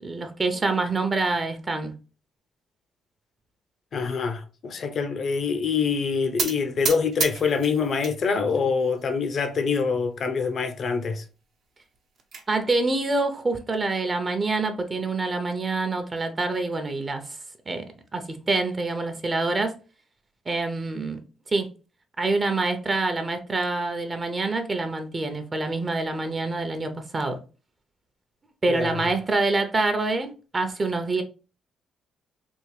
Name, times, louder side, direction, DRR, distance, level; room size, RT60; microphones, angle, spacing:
voice 1, 0.0-1.9 12.5-17.2 17.7-17.8 18.1-19.7 20.5-21.2 21.5-21.7 22.2-27.4 28.6-31.2, right 3 dB, 30° right, 0.7 m, -26 dB
voice 2, 3.9-11.2 28.7-29.1, left 5 dB, 55° left, 0.6 m, -25 dB
sound 1, 6.4-8.2 8.6-9.2 9.7-9.9 10.1-10.2 10.6-10.7 11.8-12.5, right 5 dB, 65° right, 0.8 m, -31 dB
3.5 x 2.4 x 3.2 m
cardioid pair, 90°, 0 cm